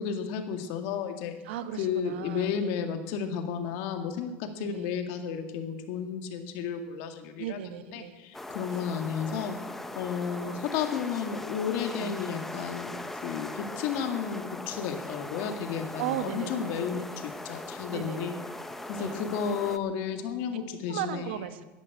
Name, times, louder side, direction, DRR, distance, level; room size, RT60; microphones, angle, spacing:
voice 1, 0.0-1.3 1.8-7.6 7.9-9.6 10.0-13.0 13.2-17.0 17.4-18.3 18.9-21.2, left 7 dB, 60° left, 6 dB, 2.1 m, -32 dB
voice 2, 1.4-2.7 4.6-4.9 7.4-8.2 8.7-8.8 10.1-10.7 11.9-12.3 16.0-17.2 17.9-18.4 19.0-19.2 20.9-21.7, right 11 dB, 90° right, 10 dB, 1.3 m, -37 dB
sound 1, 8.3-19.8, left 2 dB, 5° left, 0.8 m, -40 dB
14.0 x 10.5 x 8.4 m, 1.1 s
supercardioid pair, 155°, 6 cm